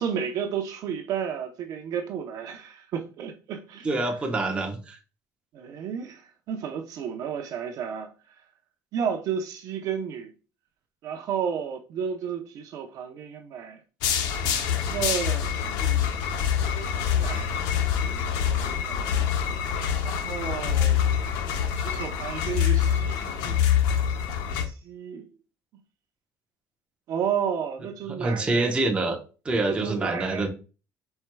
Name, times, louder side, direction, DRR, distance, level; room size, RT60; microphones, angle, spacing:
voice 1, 0.0-3.9 5.5-6.2 6.5-8.1 8.9-10.3 11.0-13.8 14.9-17.6 18.1-19.2 20.0-21.1 21.8-23.6 24.5-25.2 27.1-28.7 29.7-30.5, right 7 dB, 60° right, 0.7 m, -32 dB
voice 2, 3.8-5.0 28.1-29.2 29.4-30.5, right 2 dB, 15° right, 0.9 m, -26 dB
sound 1, 14.0-24.6, left 8 dB, 80° left, 0.7 m, -25 dB
4.4 x 4.4 x 2.2 m
cardioid pair, 140°, 7 cm